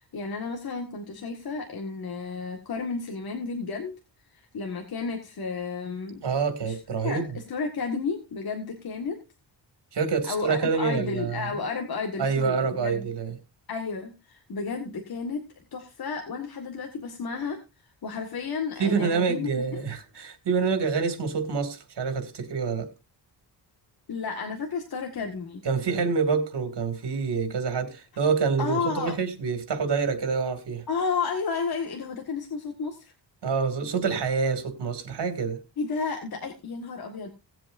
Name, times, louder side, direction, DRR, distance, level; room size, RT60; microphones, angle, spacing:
voice 1, 0.1-3.9 4.3-6.2 6.6-6.8 7.0-9.2 10.3-13.0 13.7-15.4 15.7-17.6 18.0-19.6 24.1-25.6 28.6-29.1 30.9-33.1 35.8-37.3, left 4 dB, 55° left, 1.9 m, -32 dB
voice 2, 6.2-7.3 9.9-11.6 12.2-13.4 18.8-22.9 25.6-30.8 33.4-35.6, right 5 dB, 65° right, 2.7 m, -27 dB
18.5 x 7.8 x 2.7 m
wide cardioid pair, 125°, 43 cm